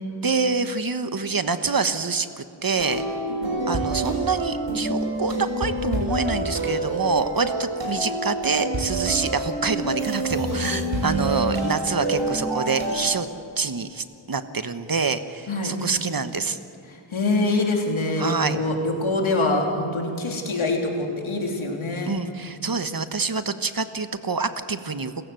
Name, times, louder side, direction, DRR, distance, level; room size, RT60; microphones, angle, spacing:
voice 1, 0.2-3.0 3.7-13.3 13.6-16.6 18.2-18.6 22.0-25.1, right 4 dB, 45° right, 10 dB, 1.3 m, -26 dB
sound 1, 2.8-13.0, right 1 dB, 65° right, 6.5 m, -27 dB
voice 2, 16.9-22.2, left 2 dB, 85° left, 1 dB, 3.5 m, -25 dB
29.5 x 15.5 x 7.9 m, 2.7 s
cardioid pair, 55°, 47 cm